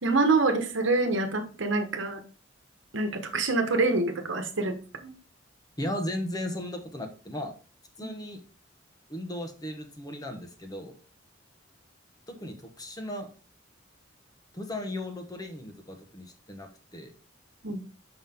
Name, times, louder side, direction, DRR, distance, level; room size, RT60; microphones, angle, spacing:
voice 1, 0.0-2.2 2.9-4.8 5.0-5.1 8.0-8.1 17.6-17.8, right 3 dB, 70° right, 6 dB, 1.2 m, -26 dB
voice 2, 5.8-7.5 8.0-8.4 9.1-10.9 12.3-13.3 14.5-17.1, left 1 dB, 20° left, 4 dB, 1.1 m, -36 dB
6.1 x 5.8 x 3.6 m, 0.36 s
head